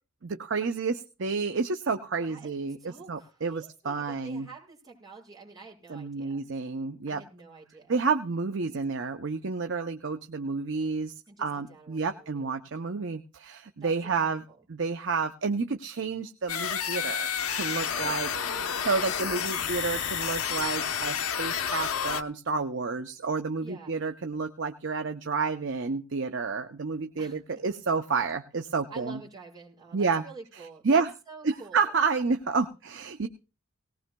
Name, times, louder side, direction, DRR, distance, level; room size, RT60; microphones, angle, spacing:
voice 1, 0.2-4.5 5.9-7.2 7.9-11.1 11.4-14.4 14.7-18.3 18.8-29.2 29.9-30.2 30.8-31.1 31.4-33.3, right 4 dB, 55° right, 6 dB, 0.6 m, -30 dB
voice 2, 2.8-6.4 7.1-7.9 11.3-12.6 13.8-14.6 17.9-18.9 23.6-24.0 27.2-27.6 28.9-31.9, right 4 dB, 20° right, -3 dB, 6.0 m, -48 dB
sound 1, 16.5-22.2, left 8 dB, 85° left, 0.9 m, -30 dB
18.5 x 18.0 x 2.3 m, 0.33 s
head